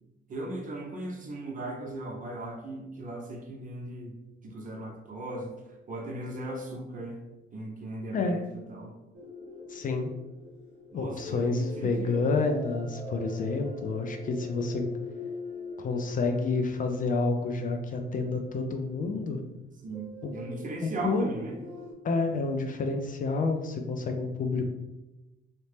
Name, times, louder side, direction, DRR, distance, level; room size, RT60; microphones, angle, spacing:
voice 1, 0.3-4.2 4.4-5.5 5.9-7.2 7.5-8.9 10.9-12.4 19.8-21.5, right 1 dB, 40° right, 0 dB, 0.7 m, -38 dB
sound 1, 9.1-18.8 19.8-21.9, left 2 dB, 75° right, 0.9 m, -42 dB
voice 2, 9.7-10.1 10.9-14.8 15.8-19.4 20.2-20.3 21.0-21.2 22.0-24.6, left 3 dB, 45° left, 5 dB, 0.4 m, -29 dB
2.8 x 2.0 x 3.2 m, 1.0 s
cardioid pair, 90°, 20 cm